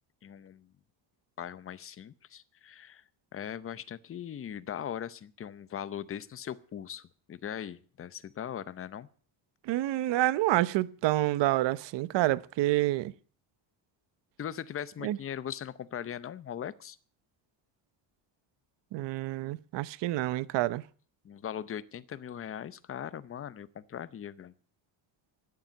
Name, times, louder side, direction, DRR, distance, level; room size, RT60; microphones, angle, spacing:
voice 1, 0.2-0.7 1.4-3.0 3.3-9.1 14.4-17.0 21.2-24.5, left 9 dB, 30° left, 0.7 m, -40 dB
voice 2, 9.6-13.1 15.0-15.2 18.9-20.8, right 16 dB, 60° right, 0.8 m, -28 dB
13.5 x 10.0 x 9.0 m
cardioid pair, 180°, 48 cm